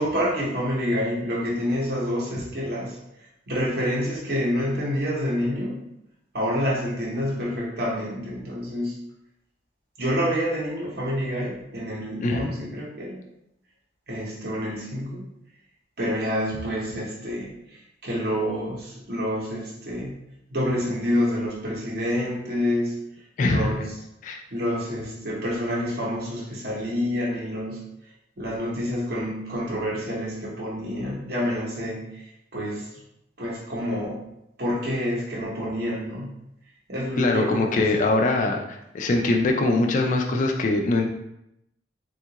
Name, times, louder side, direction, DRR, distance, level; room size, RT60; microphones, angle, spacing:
voice 1, 0.0-3.0 3.5-5.8 6.3-9.0 10.0-13.2 14.1-15.3 16.0-20.1 20.5-23.0 23.4-23.8 24.5-27.8 28.4-32.3 32.5-32.9 33.4-34.2 34.6-36.3 36.9-37.9, equal, 55° right, -5 dB, 0.8 m, -28 dB
voice 2, 12.2-12.5 23.4-23.7 24.2-24.4 37.2-41.1, left 2 dB, 40° left, 2 dB, 0.3 m, -22 dB
3.6 x 2.3 x 2.8 m, 0.82 s
head